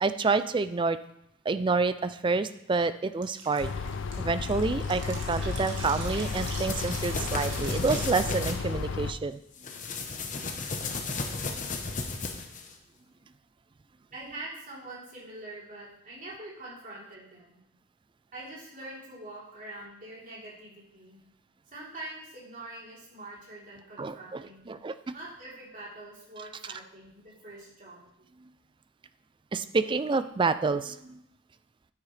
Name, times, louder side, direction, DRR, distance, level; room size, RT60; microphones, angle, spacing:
voice 1, 0.0-1.0 1.5-3.7 4.2-9.4 24.0-25.1 29.5-31.2, right 4 dB, 25° right, 12 dB, 0.3 m, -28 dB
Drip, 3.2-8.8, right 3 dB, 60° right, 1.7 m, -42 dB
sound 1, 3.6-9.1, left 4 dB, 60° left, 0.5 m, -33 dB
sound 2, 6.1-8.6 9.6-12.7, left 3 dB, 40° left, 1.0 m, -34 dB
voice 2, 14.1-17.6 18.3-21.2 21.7-24.7 25.1-28.3, right 2 dB, 40° right, -6 dB, 3.5 m, -44 dB
9.4 x 8.9 x 3.3 m, 0.76 s
head